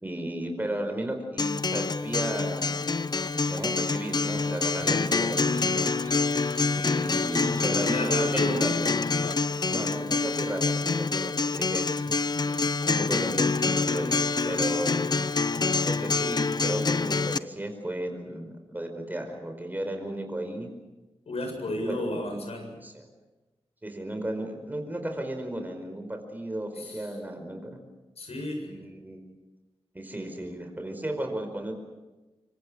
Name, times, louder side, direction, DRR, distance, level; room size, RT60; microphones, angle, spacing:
voice 1, 0.0-5.9 6.7-8.9 9.7-12.1 12.4-14.9 15.8-20.7 21.4-22.2 22.8-23.0 23.8-27.8 28.7-29.2 29.9-31.7, right 1 dB, 15° right, 5 dB, 4.9 m, -34 dB
Acoustic guitar, 1.4-17.4, left 4 dB, 40° left, 0.7 m, -26 dB
sound 1, 3.1-8.3, right 3 dB, 40° right, 2.3 m, -51 dB
voice 2, 7.8-8.7 9.2-10.0 21.3-22.8 26.7-27.1 28.2-28.8, left 1 dB, 85° left, 2 dB, 7.6 m, -33 dB
26.0 x 24.5 x 6.4 m, 1.1 s
wide cardioid pair, 95°, 10 cm